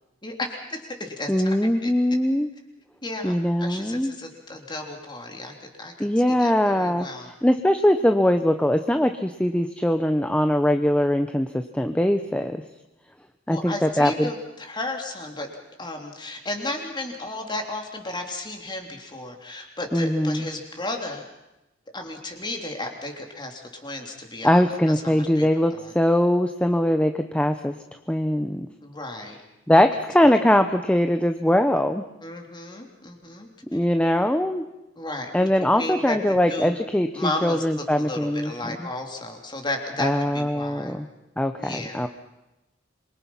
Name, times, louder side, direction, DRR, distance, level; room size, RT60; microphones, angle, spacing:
voice 1, 0.2-1.6 1.8-1.9 3.0-7.3 13.5-15.5 15.8-21.2 21.9-24.6 25.0-25.9 28.8-29.4 32.2-33.9 34.9-36.2 36.5-36.7 37.1-40.9 41.6-42.0, left 2 dB, 25° left, 2 dB, 3.3 m, -34 dB
voice 2, 1.3-2.5 3.2-4.1 6.0-7.1 7.4-12.6 13.5-14.3 19.9-20.4 24.4-27.7 28.1-28.7 29.7-32.0 33.7-34.6 35.3-38.8 40.0-41.1 41.4-42.1, left 1 dB, 5° left, 7 dB, 0.8 m, -21 dB
26.5 x 23.5 x 5.7 m, 0.96 s
head